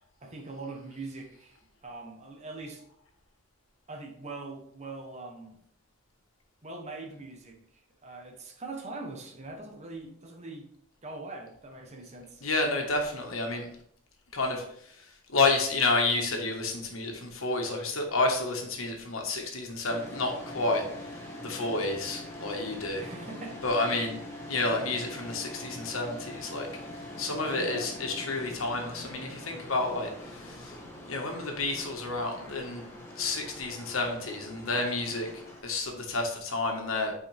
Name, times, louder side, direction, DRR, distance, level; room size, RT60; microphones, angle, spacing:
voice 1, 0.2-2.8 3.9-5.6 6.6-7.6 8.0-10.7 11.0-12.4 23.0-23.6 27.5-27.9, right 3 dB, 35° right, 3 dB, 1.1 m, -42 dB
voice 2, 12.4-13.7 14.3-14.6 15.3-21.1 21.4-23.0 23.6-24.2 24.5-26.7 27.2-30.7 31.1-32.8 33.2-35.3 35.6-37.1, left 3 dB, 70° left, 2 dB, 1.5 m, -30 dB
sound 1, 19.9-35.6, left 1 dB, 10° left, 1.5 m, -43 dB
9.0 x 4.8 x 3.5 m, 0.69 s
head